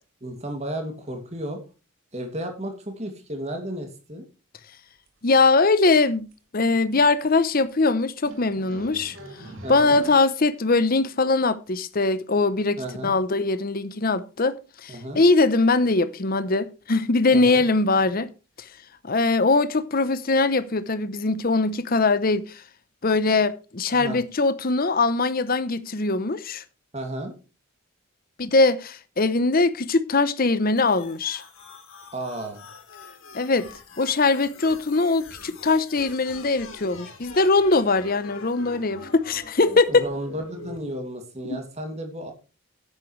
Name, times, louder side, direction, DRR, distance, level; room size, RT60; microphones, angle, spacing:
voice 1, 0.2-1.6 2.1-4.2 9.6-10.0 12.8-13.1 14.9-15.2 17.3-17.6 23.9-24.2 26.9-27.3 32.1-32.7 39.9-42.3, right 1 dB, 30° right, 2.4 m, -33 dB
sound 1, 5.1-5.2 5.4-5.7 6.0-6.1 6.3-6.4 6.6-6.7 6.9-7.2 7.7-7.8 8.2-10.2, right 1 dB, 60° right, 2.5 m, -42 dB
voice 2, 5.2-6.3 6.5-9.2 9.7-18.3 19.0-22.6 23.0-26.6 28.4-31.4 33.3-33.7 34.0-40.1 41.4-41.6, left 3 dB, 40° left, 0.7 m, -21 dB
sound 2, 30.8-40.8, left 3 dB, 65° left, 3.5 m, -44 dB
12.0 x 9.7 x 3.2 m
head